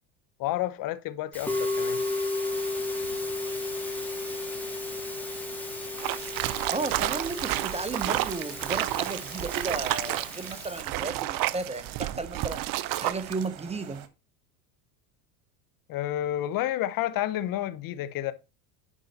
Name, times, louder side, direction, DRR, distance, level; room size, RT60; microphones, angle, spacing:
voice 1, 0.4-2.0 15.9-18.3, left 13 dB, 50° left, 1.0 m, -30 dB
Musical instrument, 1.3-10.8, left 2 dB, 5° left, 3.4 m, -34 dB
sound 1, 2.4-14.1, right 10 dB, 90° right, 1.3 m, -48 dB
sound 2, 6.0-13.5, right 16 dB, 55° right, 0.7 m, -31 dB
voice 2, 6.7-12.7 13.0-14.0, right 3 dB, 15° right, 0.8 m, -34 dB
10.0 x 5.5 x 4.1 m
supercardioid pair, 100°, 42 cm